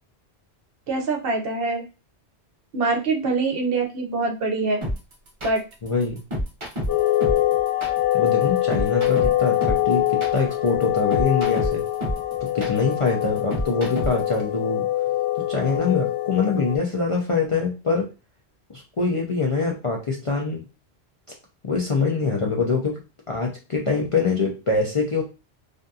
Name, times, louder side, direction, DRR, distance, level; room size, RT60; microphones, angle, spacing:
voice 1, 0.9-1.8 2.7-4.8 5.4-5.6, right 3 dB, 65° right, 3 dB, 0.8 m, -24 dB
sound 1, 4.8-14.3, equal, 35° right, 0.6 m, -29 dB
voice 2, 5.8-6.2 8.1-11.8 12.4-14.9 15.4-18.1 18.7-20.6 21.6-23.0 23.3-25.2, left 4 dB, 45° left, -1 dB, 0.4 m, -24 dB
sound 2, 6.9-16.8, left 14 dB, 85° left, 1.1 m, -24 dB
2.6 x 2.5 x 2.3 m, 0.30 s
omnidirectional pair, 1.1 m